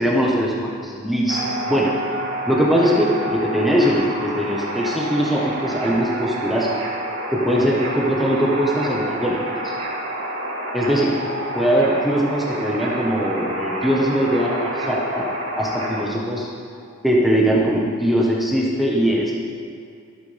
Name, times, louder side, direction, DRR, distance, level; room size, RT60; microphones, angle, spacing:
voice 1, 0.0-1.9 2.5-6.7 7.3-9.7 10.7-11.1 11.5-16.5 17.0-19.3, equal, ahead, -4 dB, 1.2 m, -21 dB
sound 1, 1.3-16.0, right 1 dB, 70° right, 2.7 m, -28 dB
26.5 x 9.2 x 3.5 m, 2.4 s
head